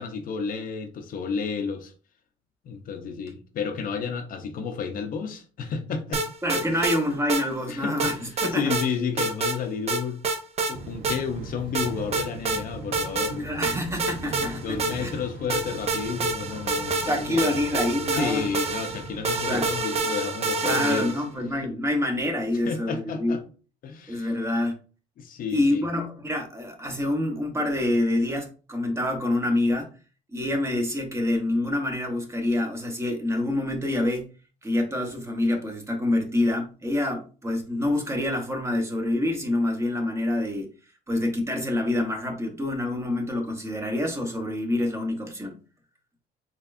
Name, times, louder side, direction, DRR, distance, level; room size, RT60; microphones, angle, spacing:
voice 1, 0.0-1.9 2.6-6.2 6.6-6.8 7.7-10.2 10.7-13.6 14.6-17.6 18.1-21.1 21.6-21.7 22.7-23.4 23.8-24.3 25.2-25.9, left 5 dB, 55° left, 0.7 m, -31 dB
sound 1, 6.1-7.0 7.3-7.4 8.0-8.9 9.2-9.6 9.9-10.7 11.0-11.2 11.7-12.6 12.9-13.3 13.6-15.2 15.5-21.3, right 3 dB, 40° right, 0.7 m, -27 dB
voice 2, 6.4-8.7 13.4-15.1 17.1-18.5 19.5-19.7 20.6-23.4 24.1-24.8 25.5-29.9 30.3-34.3 34.6-40.7 41.1-45.6, left 1 dB, 15° right, 0.9 m, -26 dB
sound 2, 10.7-19.8, right 3 dB, 90° right, 0.8 m, -40 dB
4.3 x 3.1 x 2.5 m
cardioid pair, 110°, 17 cm